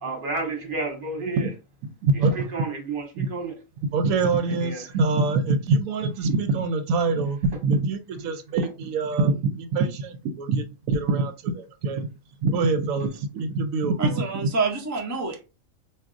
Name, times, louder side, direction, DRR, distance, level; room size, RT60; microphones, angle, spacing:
voice 1, 0.0-1.5 2.3-3.5 4.5-4.8, right 3 dB, 40° right, 1.1 m, -31 dB
voice 2, 2.0-2.3 3.1-3.3 3.9-12.1 12.4-14.2, right 3 dB, 80° right, 1.0 m, -24 dB
voice 3, 14.0-15.4, right 4 dB, 25° right, 0.3 m, -27 dB
4.6 x 2.5 x 2.5 m
omnidirectional pair, 1.5 m